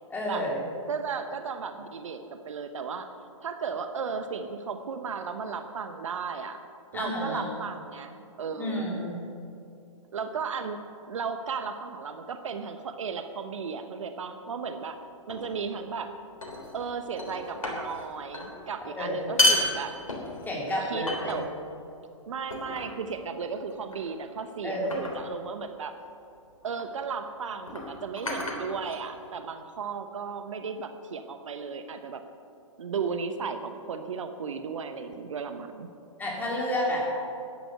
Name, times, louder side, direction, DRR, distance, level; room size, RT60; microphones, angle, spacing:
voice 1, 0.1-0.6 6.9-7.5 8.6-9.1 18.9-19.3 20.4-21.4 24.6-24.9 36.2-37.0, left 1 dB, 10° left, -4 dB, 3.4 m, -30 dB
voice 2, 0.9-3.1 3.4-6.6 6.9-8.9 10.1-10.8 11.1-15.0 15.3-16.1 16.7-19.9 20.8-21.4 22.3-25.9 26.6-32.2 32.8-35.9, right 5 dB, 65° right, 8 dB, 1.0 m, -35 dB
sound 1, 15.3-15.6 16.4-16.9 17.2-18.0 18.3-18.5 19.2-20.5 21.1-21.7 22.5-23.0 23.9-24.2 24.9-25.3 26.5-26.7 27.6-29.3, left 1 dB, 85° left, 3.3 m, -30 dB
11.5 x 11.5 x 6.6 m, 2.6 s
figure-of-eight pair, 125°, 17 cm